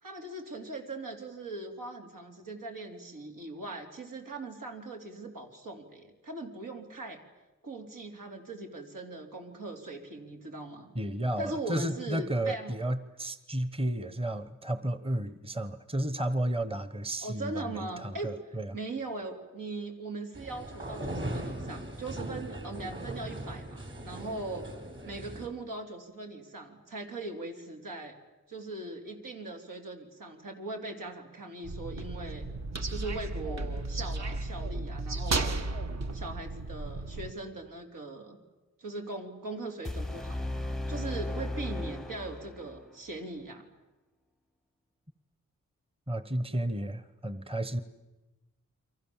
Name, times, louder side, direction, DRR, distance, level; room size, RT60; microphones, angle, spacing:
voice 1, 0.0-7.2 7.6-10.9 11.4-12.7 17.2-18.3 18.7-24.7 25.1-28.2 28.5-32.5 32.9-35.6 36.1-38.4 38.8-40.5 40.9-43.7, right 2 dB, 80° right, 3 dB, 4.0 m, -40 dB
voice 2, 10.9-18.8 46.1-47.8, right 1 dB, 15° right, 13 dB, 1.1 m, -32 dB
sound 1, 20.3-25.5, right 1 dB, 40° right, 4.9 m, -39 dB
sound 2, 31.6-37.3, right 2 dB, 55° right, 1.5 m, -34 dB
sound 3, 39.8-42.8, left 1 dB, ahead, 0.8 m, -35 dB
30.0 x 24.0 x 7.4 m, 1.1 s
wide cardioid pair, 110°, 32 cm